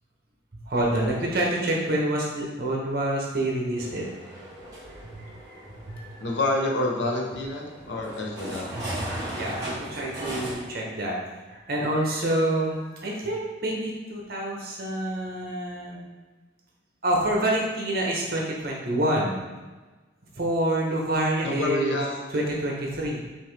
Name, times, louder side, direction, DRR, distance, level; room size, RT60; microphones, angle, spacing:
voice 1, 0.6-4.0 4.9-6.1 8.7-8.9 9.3-11.2 11.5-16.0 17.0-19.4 20.4-22.0 22.3-23.2, right 1 dB, 50° right, -2 dB, 0.9 m, -27 dB
sound 1, 3.7-10.5, right 1 dB, 20° right, 1.5 m, -37 dB
voice 2, 6.2-8.7 21.4-22.1, left 2 dB, 70° left, -1 dB, 0.8 m, -28 dB
5.5 x 2.7 x 3.2 m, 1.3 s
head